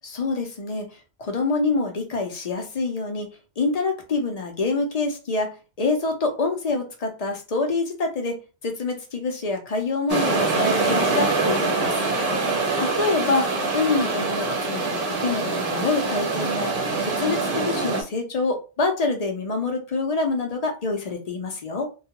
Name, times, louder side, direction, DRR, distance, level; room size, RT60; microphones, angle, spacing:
voice 1, 0.0-0.9 1.2-3.3 3.6-5.5 5.8-8.4 8.6-12.0 12.8-13.5 13.7-16.7 17.1-21.9, left 3 dB, 45° left, 3 dB, 0.6 m, -26 dB
sound 1, 10.1-18.0, right 3 dB, 40° right, 0.6 m, -24 dB
2.3 x 2.2 x 2.8 m, 0.32 s
omnidirectional pair, 1.1 m